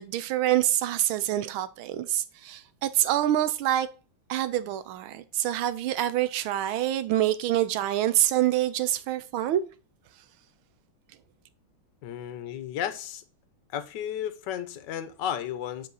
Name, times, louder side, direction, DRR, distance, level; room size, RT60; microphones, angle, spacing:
voice 1, 0.0-3.9 4.3-9.6, right 13 dB, 75° right, 1.4 m, -26 dB
voice 2, 12.0-13.2 13.7-15.9, left 10 dB, 65° left, 1.3 m, -33 dB
7.7 x 4.5 x 4.0 m
omnidirectional pair, 2.4 m